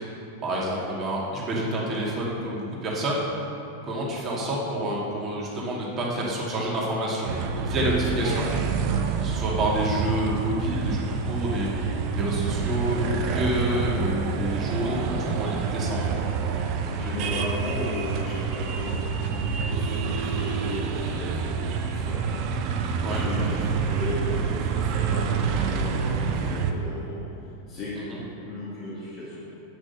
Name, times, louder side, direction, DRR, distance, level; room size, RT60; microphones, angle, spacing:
voice 1, 0.4-3.2 3.8-8.5 9.2-11.7 12.1-16.0 23.0-23.2, right 1 dB, 25° right, -4 dB, 2.4 m, -28 dB
sound 1, 7.2-26.7, right 5 dB, 40° right, 0.7 m, -27 dB
voice 2, 16.8-22.3 23.0-27.2 27.7-29.4, left 1 dB, 30° left, -8 dB, 2.3 m, -35 dB
8.5 x 6.2 x 6.7 m, 2.6 s
figure-of-eight pair, 90°, 0 cm